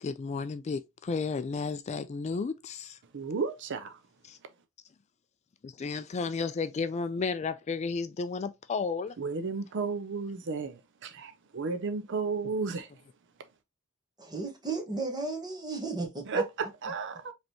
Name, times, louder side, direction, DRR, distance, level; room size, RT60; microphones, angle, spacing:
voice 1, 0.0-3.0 4.2-4.4 5.6-9.1, left 4 dB, 30° left, 0.3 m, -33 dB
voice 2, 3.1-4.0 9.2-12.9 16.3-17.3, right 4 dB, 60° right, 0.5 m, -33 dB
voice 3, 14.2-16.7, right 3 dB, 20° right, 1.4 m, -35 dB
5.1 x 3.3 x 2.9 m
head